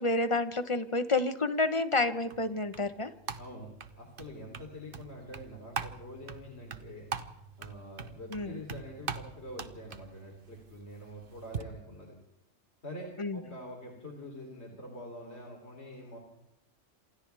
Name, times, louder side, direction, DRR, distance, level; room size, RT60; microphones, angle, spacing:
voice 1, 0.0-3.1 8.3-8.6 13.2-13.4, left 2 dB, 25° left, 10 dB, 1.1 m, -29 dB
sound 1, 2.0-11.6, right 6 dB, 45° right, 1.1 m, -43 dB
voice 2, 3.4-7.1 7.6-12.2 12.8-16.2, left 1 dB, 55° left, 0 dB, 3.7 m, -45 dB
28.0 x 27.0 x 3.5 m, 0.81 s
omnidirectional pair, 1.3 m